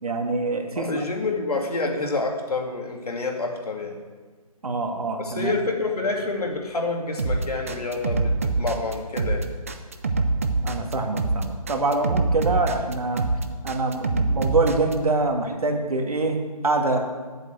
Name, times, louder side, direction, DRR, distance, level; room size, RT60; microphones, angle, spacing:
voice 1, 0.0-1.1 4.6-5.5 10.6-13.3 13.6-17.0, right 3 dB, 70° right, 3 dB, 2.1 m, -25 dB
voice 2, 0.7-4.0 5.2-9.5, left 3 dB, 75° left, 1 dB, 2.5 m, -28 dB
sound 1, 7.2-14.9, right 3 dB, 20° right, 0.5 m, -24 dB
8.6 x 8.1 x 7.9 m, 1.4 s
hypercardioid pair, 165°, 20 cm